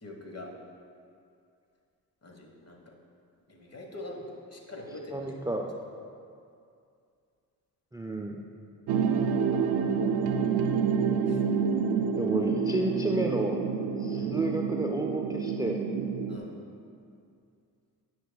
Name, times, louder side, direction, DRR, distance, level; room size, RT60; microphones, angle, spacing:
voice 1, 0.0-0.5 2.2-2.9 3.5-5.4 11.3-11.4 14.1-14.4 16.3-16.5, left 1 dB, 40° left, 1 dB, 1.2 m, -43 dB
voice 2, 5.1-5.7 7.9-8.4 12.2-13.6 14.0-15.8, right 1 dB, 10° right, 1 dB, 0.4 m, -31 dB
sound 1, 8.9-16.4, right 6 dB, 80° right, 0.5 m, -28 dB
10.0 x 5.9 x 2.3 m, 2.4 s
supercardioid pair, 50°, 38 cm